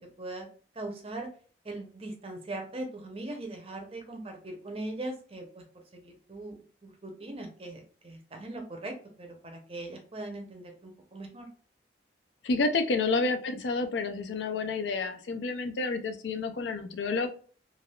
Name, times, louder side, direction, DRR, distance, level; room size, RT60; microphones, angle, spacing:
voice 1, 0.7-1.3 1.6-5.6 5.9-6.6 6.8-11.5, right 2 dB, 30° right, 3 dB, 0.6 m, -40 dB
voice 2, 12.4-17.3, left 3 dB, 75° left, 7 dB, 0.4 m, -29 dB
3.3 x 2.3 x 2.2 m, 0.42 s
head